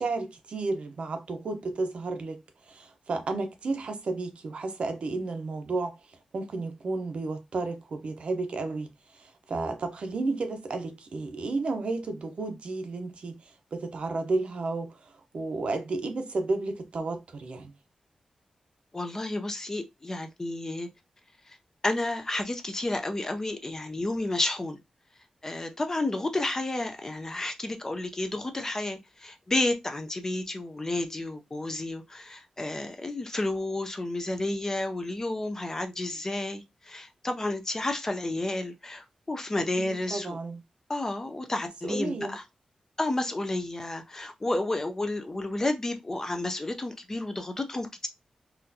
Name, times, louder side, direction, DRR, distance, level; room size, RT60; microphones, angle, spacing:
voice 1, 0.0-2.4 2.7-6.0 6.3-17.7 39.8-40.6 41.8-42.4, right 3 dB, 60° right, 0.7 m, -32 dB
voice 2, 18.9-20.9 21.5-21.6 21.8-24.8 25.4-40.4 40.9-42.4 43.0-48.1, left 2 dB, 20° left, 0.5 m, -31 dB
4.1 x 2.5 x 2.7 m
wide cardioid pair, 145°, 2 cm